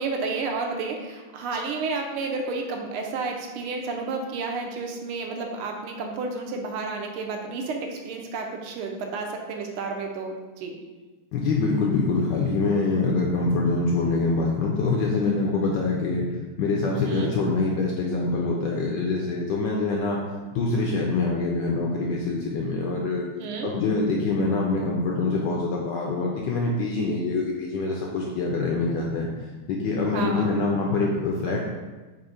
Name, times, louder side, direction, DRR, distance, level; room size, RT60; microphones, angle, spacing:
voice 1, 0.0-10.8 14.0-14.1 17.0-17.3 23.4-23.7 30.0-30.6, right 4 dB, 85° right, 2 dB, 1.5 m, -31 dB
voice 2, 11.3-16.3 16.6-20.2 20.5-23.3 23.6-29.3 29.7-31.6, left 3 dB, 75° left, -2 dB, 1.0 m, -25 dB
4.4 x 2.5 x 4.8 m, 1.3 s
omnidirectional pair, 2.4 m